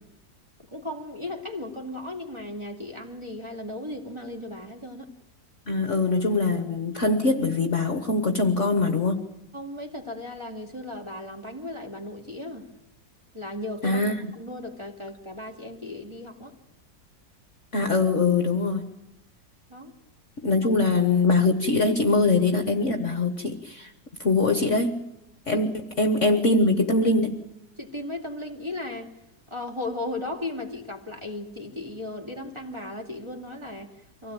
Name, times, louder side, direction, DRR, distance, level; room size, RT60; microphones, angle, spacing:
voice 1, 0.7-5.1 9.5-12.7 13.3-16.5 19.7-19.9 25.5-25.6 27.8-29.1 29.5-34.3, left 2 dB, 15° right, 2 dB, 2.6 m, -36 dB
voice 2, 5.7-9.2 13.8-14.1 17.7-18.9 20.4-23.9 24.2-25.0 25.5-27.4, left 3 dB, 45° left, 7 dB, 1.4 m, -23 dB
24.5 x 16.5 x 8.9 m, 0.86 s
omnidirectional pair, 1.9 m